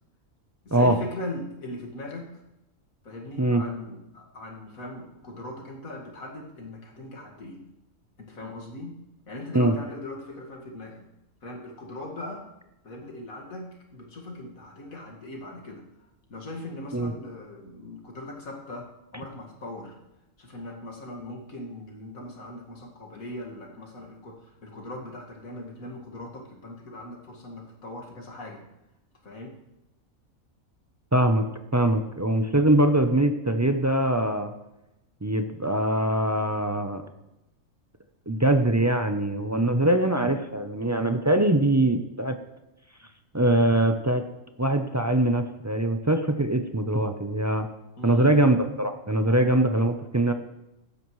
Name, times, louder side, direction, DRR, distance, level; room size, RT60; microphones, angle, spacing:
voice 1, 0.7-2.4 3.0-7.6 8.2-9.0 9.3-11.0 11.4-12.5 12.8-20.0 20.4-28.6 29.2-29.6 48.0-48.4, left 1 dB, 80° left, 0 dB, 2.4 m, -39 dB
voice 2, 31.1-31.5 31.7-34.5 35.2-37.0 38.3-42.4 43.3-44.2 44.6-47.7 48.0-50.3, right 1 dB, 25° right, 6 dB, 0.4 m, -22 dB
15.5 x 12.0 x 3.2 m, 0.92 s
omnidirectional pair, 1.4 m